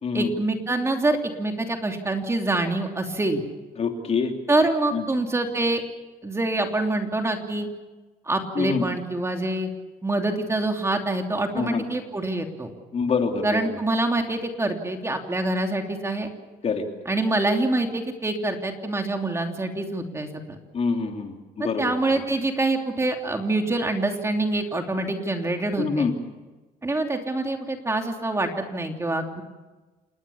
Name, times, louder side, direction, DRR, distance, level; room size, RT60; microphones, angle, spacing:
voice 1, 0.1-3.4 4.5-5.8 6.2-7.7 8.3-9.7 10.0-12.7 13.4-16.3 17.0-20.6 21.6-26.0 26.8-29.4, right 2 dB, 15° right, 4 dB, 2.9 m, -25 dB
voice 2, 3.8-4.3 4.9-5.0 8.5-8.8 11.5-11.8 12.9-13.6 16.6-16.9 20.7-21.9 25.8-26.1, left 5 dB, 40° left, 3 dB, 3.2 m, -25 dB
29.0 x 18.5 x 7.1 m, 1.2 s
cardioid pair, 110°, 17 cm